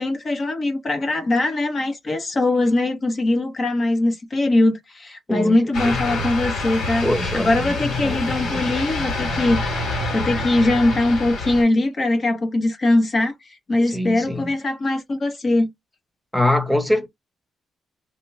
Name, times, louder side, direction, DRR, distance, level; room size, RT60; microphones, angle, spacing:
voice 1, 0.0-7.1 7.3-9.6 10.1-15.7, left 2 dB, 35° left, 0.9 m, -21 dB
sound 1, 5.7-11.6, left 2 dB, 80° left, 2.6 m, -27 dB
voice 2, 5.9-6.3 7.0-7.5 7.8-8.6 13.9-14.4 16.3-17.1, left 1 dB, 5° left, 1.0 m, -23 dB
3.3 x 2.9 x 3.2 m
cardioid pair, 90°, 0 cm